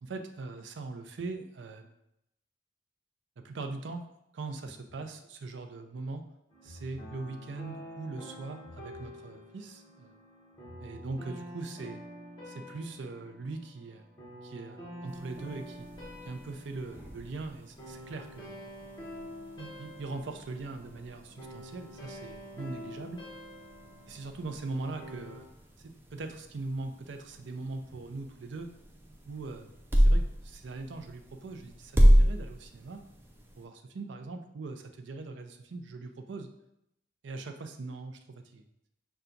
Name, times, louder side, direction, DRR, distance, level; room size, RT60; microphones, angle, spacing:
voice 1, 0.0-1.9 3.4-4.1 4.3-6.2 6.6-10.2 10.8-12.0 12.5-14.1 14.4-15.9 16.2-18.6 19.6-23.2 24.1-25.5 25.8-28.7 29.3-33.0 33.6-36.5 37.2-38.6, right 3 dB, 70° right, 6 dB, 0.5 m, -41 dB
sound 1, 4.6-5.1 6.5-7.2 8.6-9.2 10.5-11.2, left 1 dB, 55° right, 1.0 m, -50 dB
sound 2, 6.5-25.4, equal, 20° left, 1.1 m, -47 dB
sound 3, 15.1-33.7, equal, 10° right, 0.4 m, -31 dB
5.6 x 2.3 x 3.8 m, 0.83 s
head